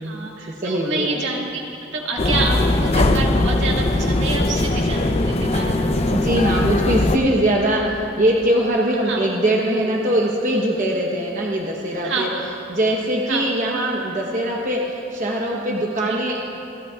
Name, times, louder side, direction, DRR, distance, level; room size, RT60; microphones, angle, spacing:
voice 1, 0.0-1.6 1.9-6.3 9.0-9.2 12.0-12.5 13.3-13.5 16.1-16.2, right 3 dB, 70° right, -2 dB, 1.8 m, -27 dB
voice 2, 0.6-1.2 6.1-12.3 12.7-16.4, right 1 dB, 40° right, -2 dB, 1.0 m, -22 dB
sound 1, 2.2-7.2, left 2 dB, 30° left, 0.5 m, -20 dB
28.0 x 11.5 x 2.4 m, 2.8 s
head